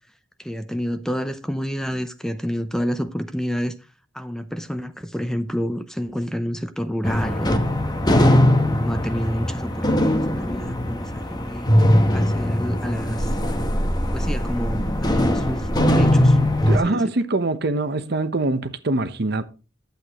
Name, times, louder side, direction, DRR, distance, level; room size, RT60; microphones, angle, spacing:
voice 1, 0.4-3.7 4.1-7.7 8.4-11.7 12.1-13.3 14.1-14.8 15.1-16.4 16.6-17.0, equal, 5° left, 0.6 m, -29 dB
sound 1, 7.0-16.8, left 1 dB, 20° left, 1.1 m, -20 dB
voice 2, 16.7-19.4, right 2 dB, 55° right, 0.9 m, -23 dB
11.5 x 8.2 x 3.0 m
head